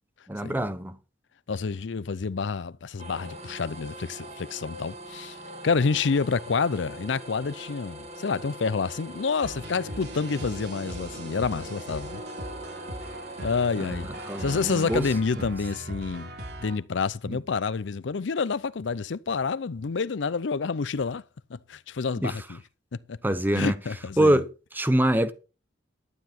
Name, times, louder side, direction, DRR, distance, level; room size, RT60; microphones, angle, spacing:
voice 1, 0.3-1.0 13.8-15.1 15.4-15.5 17.3-17.4 22.2-22.3 23.2-23.7 24.2-24.5 24.7-25.3, right 1 dB, 10° right, 0.9 m, -24 dB
voice 2, 1.5-5.4 5.6-12.2 13.4-14.1 14.4-16.3 16.6-21.2 21.5-22.6 22.9-23.2 23.5-24.4, left 5 dB, 75° left, 0.5 m, -28 dB
sound 1, 3.0-15.2, right 1 dB, 35° right, 2.2 m, -42 dB
sound 2, 9.4-16.8, right 1 dB, 60° right, 3.2 m, -39 dB
12.0 x 9.7 x 4.3 m
head